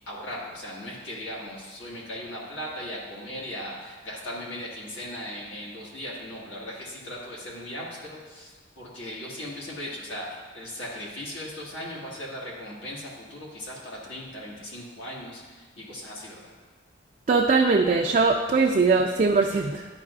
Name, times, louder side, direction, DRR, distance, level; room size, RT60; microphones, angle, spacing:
voice 1, 0.1-16.5, left 1 dB, 80° left, -4 dB, 1.7 m, -38 dB
voice 2, 17.3-19.9, right 4 dB, 40° right, 0 dB, 0.3 m, -21 dB
10.5 x 5.4 x 2.4 m, 1.3 s
head